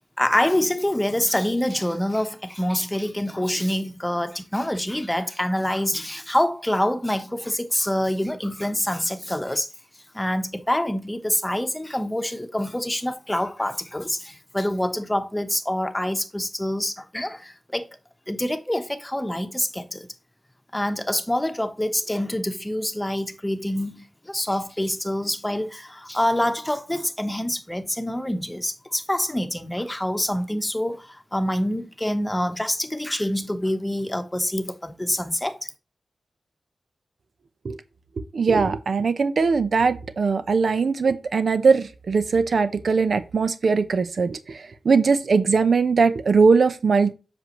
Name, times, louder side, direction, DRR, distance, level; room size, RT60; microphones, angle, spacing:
voice 1, 0.2-9.7 10.1-17.9 18.3-20.1 20.7-35.7, left 1 dB, 10° left, 1.1 m, -26 dB
voice 2, 38.3-47.1, right 5 dB, 75° right, 0.8 m, -20 dB
7.9 x 6.3 x 3.1 m
wide cardioid pair, 85°, 0 cm